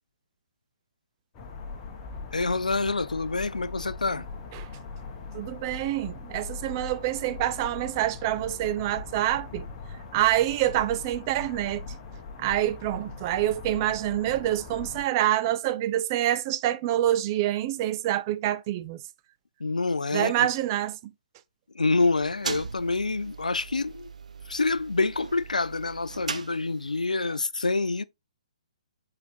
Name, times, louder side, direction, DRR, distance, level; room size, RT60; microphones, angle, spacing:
sound 1, 1.3-15.0, left 4 dB, 25° left, 1.5 m, -41 dB
voice 1, 2.3-4.3 19.6-20.5 21.7-24.1 24.5-28.0, left 3 dB, 85° left, 0.4 m, -27 dB
voice 2, 5.3-9.7 10.1-11.9 12.4-19.0 20.1-21.1, right 13 dB, 30° right, 0.5 m, -26 dB
sound 2, 22.0-27.1, right 5 dB, 70° right, 0.9 m, -39 dB
7.9 x 4.7 x 2.7 m
figure-of-eight pair, 130°, 4 cm